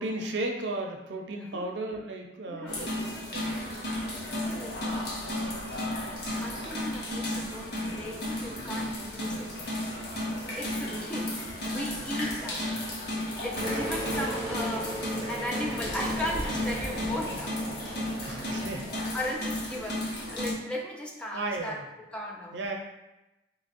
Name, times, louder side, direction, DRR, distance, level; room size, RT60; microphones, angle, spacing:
voice 1, 0.0-2.9 3.3-3.5 18.2-19.1 21.3-21.8 22.5-22.7, right 2 dB, 75° right, 2 dB, 0.6 m, -34 dB
voice 2, 2.5-3.1 3.8-5.6 6.4-9.5 10.6-11.4 11.6-12.7 13.4-14.9 15.3-18.2 19.1-20.0 20.3-22.6, left 1 dB, 5° left, -2 dB, 0.4 m, -37 dB
sound 1, 2.7-20.5, left 1 dB, 60° left, 0.9 m, -34 dB
sound 2, 13.5-19.1, right 1 dB, 45° right, 1.0 m, -36 dB
4.0 x 3.0 x 2.5 m, 0.97 s
head